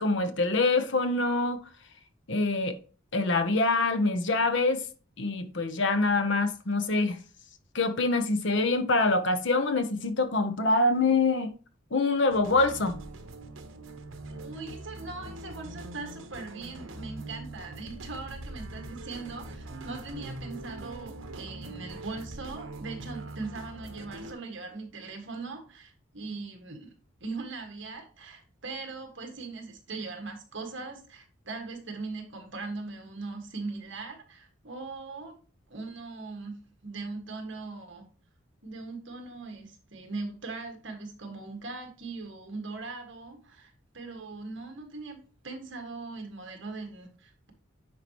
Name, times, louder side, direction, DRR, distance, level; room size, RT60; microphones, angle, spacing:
voice 1, 0.0-1.6 2.3-2.8 3.1-4.9 5.2-7.2 7.7-11.5 11.9-13.0, left 3 dB, 60° left, 0.9 m, -25 dB
sound 1, 12.3-24.3, right 2 dB, 80° right, 1.2 m, -42 dB
voice 2, 14.4-26.9 27.2-35.3 35.7-38.0 38.6-47.5, right 3 dB, 65° right, 1.8 m, -40 dB
9.3 x 4.9 x 3.0 m
head